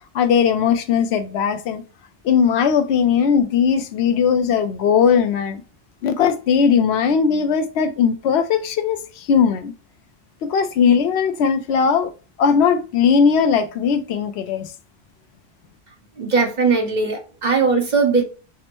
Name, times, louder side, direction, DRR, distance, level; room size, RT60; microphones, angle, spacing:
voice 1, 0.1-1.8 2.2-5.6 6.0-9.7 10.4-12.1 12.4-14.7, left 6 dB, 70° left, 0.8 m, -18 dB
voice 2, 16.2-18.2, right 4 dB, 40° right, 1.1 m, -19 dB
6.0 x 2.0 x 3.0 m
omnidirectional pair, 1.2 m